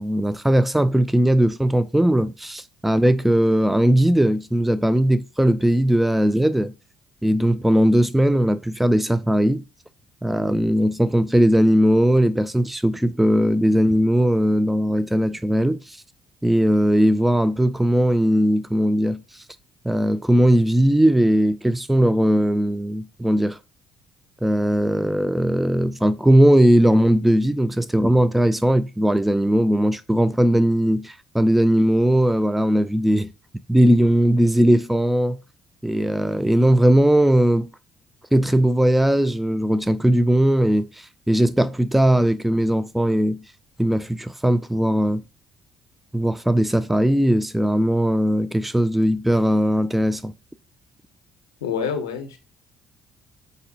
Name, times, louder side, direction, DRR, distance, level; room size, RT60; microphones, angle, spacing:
voice 1, 0.0-6.7 7.2-9.6 10.2-16.0 16.4-19.2 19.8-23.6 24.4-33.3 33.7-35.4 35.8-37.7 38.3-43.4 43.8-45.2 46.1-50.3, equal, 5° right, 0.3 m, -19 dB
voice 2, 51.6-52.4, left 7 dB, 90° left, 0.6 m, -27 dB
5.2 x 2.1 x 4.0 m
hypercardioid pair, 55°, 2 cm